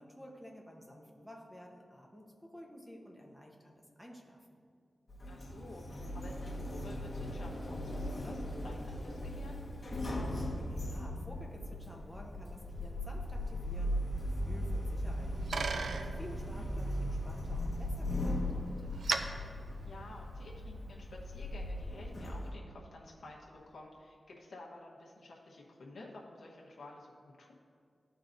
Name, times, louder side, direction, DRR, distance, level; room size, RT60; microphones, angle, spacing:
voice 1, 0.0-4.6 10.2-19.0, equal, ahead, 0 dB, 1.0 m, -52 dB
Sliding door, 5.1-22.5, left 1 dB, 35° left, 1.1 m, -38 dB
voice 2, 5.3-9.6 16.5-16.7 19.8-27.5, left 2 dB, 90° left, -3 dB, 1.1 m, -51 dB
sound 1, 5.5-22.1, right 1 dB, 50° right, 1.5 m, -54 dB
Bicycle, 14.9-20.6, right 4 dB, 90° right, 0.4 m, -41 dB
13.5 x 4.6 x 2.6 m, 2.2 s
wide cardioid pair, 115°, 0 cm